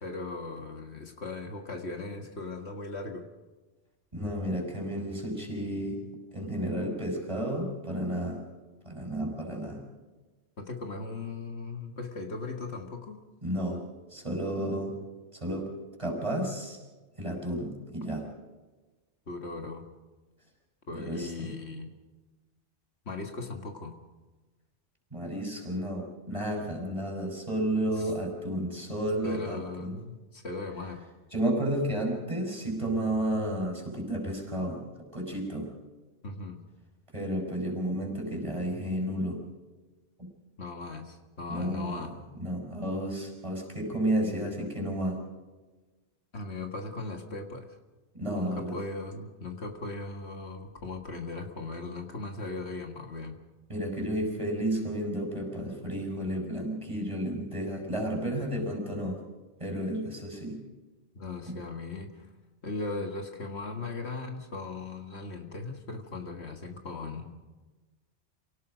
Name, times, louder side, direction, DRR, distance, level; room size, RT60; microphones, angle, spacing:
voice 1, 0.0-3.3 10.6-13.2 19.3-19.9 20.9-22.0 23.1-23.9 28.0-28.1 29.2-31.0 36.2-36.6 40.6-42.1 46.3-47.7 48.4-53.4 61.1-62.3 62.6-67.3, left 3 dB, 65° left, 4 dB, 2.1 m, -38 dB
voice 2, 4.1-6.0 6.3-8.4 8.8-9.8 13.4-13.8 14.1-14.9 15.3-15.7 16.0-16.8 17.2-18.2 20.9-21.5 25.1-29.9 31.3-34.8 35.1-35.7 37.1-39.4 40.2-40.3 41.5-42.0 42.4-45.2 48.1-48.7 53.7-59.2 59.6-60.6 61.5-61.6, right 1 dB, 25° right, 0 dB, 5.7 m, -32 dB
28.0 x 18.0 x 5.1 m, 1.2 s
omnidirectional pair, 1.2 m